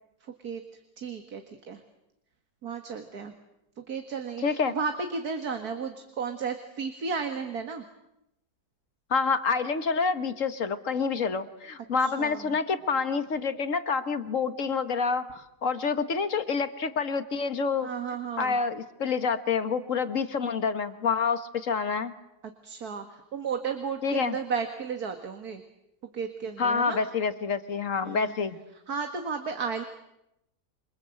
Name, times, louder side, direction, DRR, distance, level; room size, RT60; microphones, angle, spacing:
voice 1, 0.2-0.6 1.0-1.8 2.6-3.3 3.8-7.8 12.0-12.6 17.8-18.6 22.6-25.6 26.0-27.0 28.0-28.3 28.9-29.8, right 5 dB, 65° right, 6 dB, 2.3 m, -34 dB
voice 2, 4.4-4.7 9.1-17.9 18.4-22.1 24.0-24.4 26.6-28.6, left 5 dB, 50° left, 10 dB, 1.7 m, -27 dB
28.5 x 25.5 x 7.9 m, 0.84 s
omnidirectional pair, 1.8 m